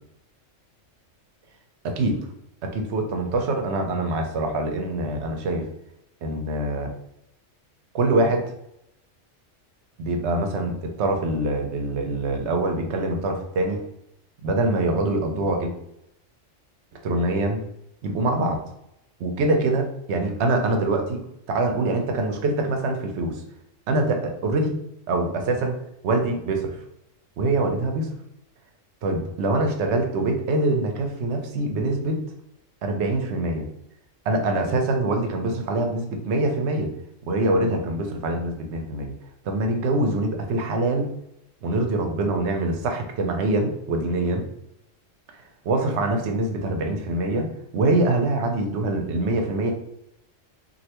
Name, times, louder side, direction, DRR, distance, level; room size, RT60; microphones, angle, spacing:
voice 1, 1.8-2.2 2.6-5.7 6.2-6.9 7.9-8.5 10.0-13.8 14.4-15.7 17.0-17.6 18.0-18.6 19.2-21.2 21.5-23.4 23.9-24.7 25.1-26.8 27.4-28.1 29.0-32.2 32.8-33.7 34.3-36.9 37.3-39.1 39.4-41.1 41.6-44.4 45.7-49.7, right 2 dB, 65° right, 4 dB, 0.8 m, -24 dB
3.2 x 2.6 x 2.9 m, 0.79 s
omnidirectional pair, 1.3 m